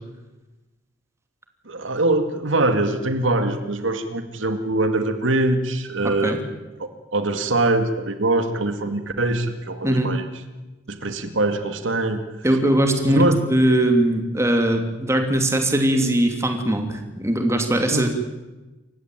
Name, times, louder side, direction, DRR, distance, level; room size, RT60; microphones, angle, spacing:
voice 1, 1.7-6.4 6.8-10.3 10.9-12.2 13.1-13.4 17.9-18.1, right 2 dB, 85° right, 8 dB, 2.2 m, -23 dB
voice 2, 12.4-18.1, right 1 dB, 15° right, 5 dB, 2.9 m, -20 dB
28.5 x 16.0 x 9.3 m, 1.1 s
head